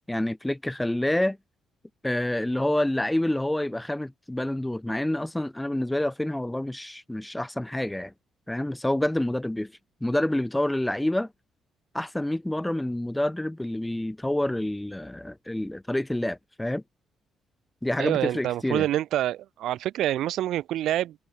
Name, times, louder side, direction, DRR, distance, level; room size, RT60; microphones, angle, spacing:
voice 1, 0.1-1.4 2.0-8.1 8.5-9.7 10.0-11.3 11.9-16.8 17.8-18.9, left 1 dB, 10° left, 3.1 m, -28 dB
voice 2, 18.0-21.2, right 13 dB, 80° right, 7.4 m, -27 dB
cardioid pair, 90°, 0 cm